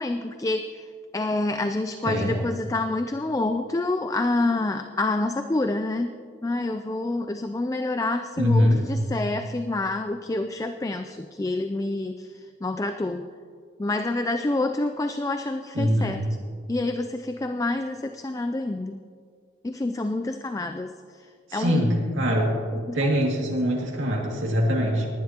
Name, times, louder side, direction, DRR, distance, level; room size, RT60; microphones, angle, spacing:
voice 1, 0.0-6.1 6.4-13.3 13.8-16.2 16.7-19.0 19.6-20.9 21.2-21.3 21.5-21.9 22.9-23.3, left 2 dB, 15° left, 7 dB, 0.3 m, -28 dB
voice 2, 2.0-2.4 8.4-8.8 15.7-16.2 21.5-22.6 22.9-25.1, equal, 85° right, -2 dB, 2.2 m, -23 dB
19.0 x 11.0 x 2.9 m, 2.1 s
head